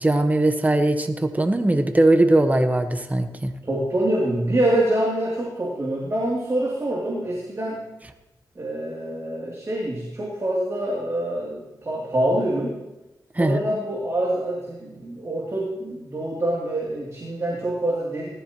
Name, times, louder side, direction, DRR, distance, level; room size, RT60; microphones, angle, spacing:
voice 1, 0.0-3.5 13.3-13.6, right 1 dB, 20° right, 7 dB, 1.1 m, -20 dB
voice 2, 3.6-7.8 8.5-12.7 13.4-18.3, right 1 dB, 40° right, -4 dB, 2.9 m, -25 dB
18.5 x 13.0 x 3.1 m, 1.0 s
cardioid pair, 70°, 8 cm